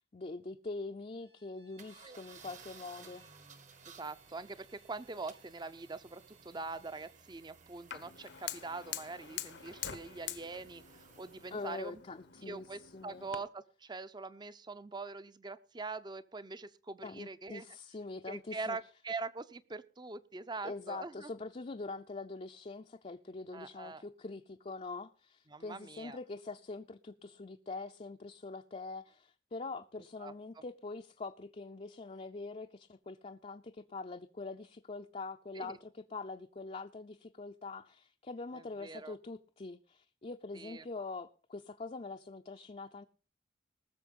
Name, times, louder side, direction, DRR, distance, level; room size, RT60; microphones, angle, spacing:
voice 1, 0.0-3.2 11.5-12.6 12.9-13.3 17.0-18.8 20.6-43.1, left 3 dB, 35° left, 0.5 m, -44 dB
Bowed string instrument, 1.1-7.2, right 4 dB, 75° right, 2.8 m, -67 dB
sound 1, 1.8-11.9, right 5 dB, 45° right, 1.2 m, -58 dB
voice 2, 3.8-12.0 12.4-17.7 18.3-21.3 23.5-24.0 25.5-26.2 30.2-30.6 35.5-35.8 38.5-39.2 40.5-40.9, right 3 dB, 25° right, 0.6 m, -43 dB
Fire, 7.9-13.4, left 10 dB, 80° left, 1.1 m, -45 dB
19.5 x 6.8 x 5.4 m
head